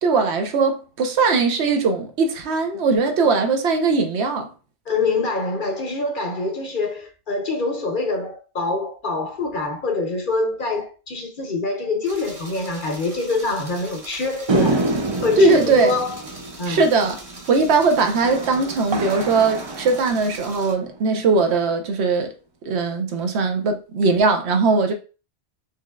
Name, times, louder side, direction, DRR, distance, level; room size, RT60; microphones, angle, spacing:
voice 1, 0.0-4.5 15.4-16.0 16.7-17.2 17.5-22.3 22.7-24.9, right 4 dB, 70° right, 0.9 m, -20 dB
voice 2, 4.9-14.8 15.2-16.2 16.6-16.9, left 3 dB, 50° left, 0.7 m, -25 dB
sound 1, 12.0-20.7, right 2 dB, 30° right, 0.9 m, -42 dB
sound 2, 14.5-21.0, right 2 dB, 50° right, 0.3 m, -27 dB
4.7 x 3.0 x 2.2 m
omnidirectional pair, 1.2 m